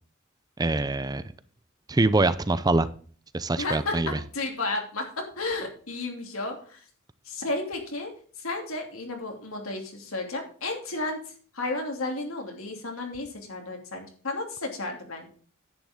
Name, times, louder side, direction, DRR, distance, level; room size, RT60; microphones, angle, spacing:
voice 1, 0.6-1.2 1.9-2.9 3.3-4.2, right 2 dB, 20° right, 14 dB, 0.5 m, -24 dB
voice 2, 3.6-6.8 7.2-8.1 8.4-11.2 11.5-15.3, left 2 dB, 90° left, 2 dB, 2.8 m, -33 dB
10.5 x 8.8 x 3.7 m, 0.43 s
head